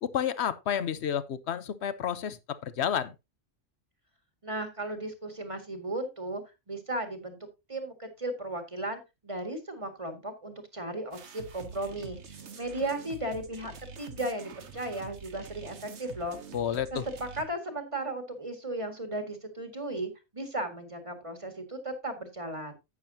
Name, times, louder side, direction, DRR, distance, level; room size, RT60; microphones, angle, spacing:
voice 1, 0.0-3.1 16.5-17.0, left 9 dB, 60° left, 1.0 m, -30 dB
voice 2, 4.4-7.4 7.7-12.2 12.6-16.4 16.9-17.0 17.3-22.7, right 1 dB, 25° right, 1.8 m, -36 dB
sound 1, 11.1-17.5, right 5 dB, 60° right, 1.4 m, -46 dB
11.0 x 8.9 x 2.8 m
omnidirectional pair, 1.3 m